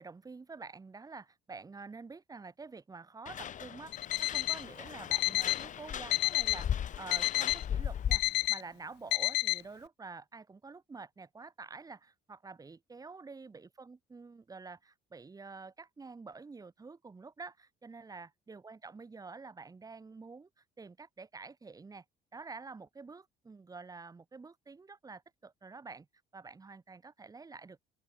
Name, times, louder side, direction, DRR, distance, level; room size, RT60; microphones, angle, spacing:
voice 1, 0.0-22.1 22.3-26.1 26.3-27.8, right 4 dB, 20° right, 1.8 m, -48 dB
sound 1, 3.3-8.5, left 9 dB, 50° left, 1.9 m, -38 dB
Alarm, 3.9-4.6 5.1-5.6 6.1-6.6 7.1-7.6 8.1-8.6 9.1-9.6, left 20 dB, 85° left, 0.6 m, -30 dB
open air
cardioid pair, 110°, 17 cm